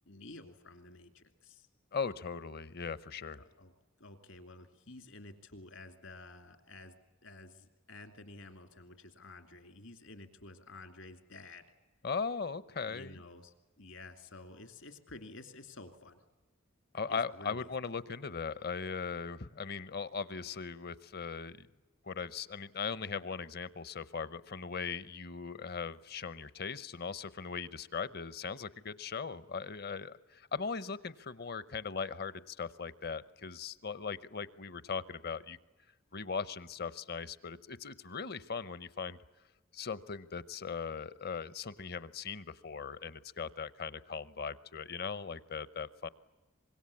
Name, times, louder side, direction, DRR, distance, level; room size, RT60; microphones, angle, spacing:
voice 1, 0.1-1.7 3.4-3.7 4.0-6.9 7.2-11.6 12.9-16.2 17.1-17.7, left 2 dB, 75° left, 8 dB, 2.8 m, -51 dB
voice 2, 1.9-3.4 12.0-13.2 16.9-21.7 22.1-35.6 36.1-39.2 39.7-46.1, left 5 dB, 50° left, 17 dB, 0.8 m, -39 dB
25.0 x 22.0 x 8.5 m, 1.1 s
head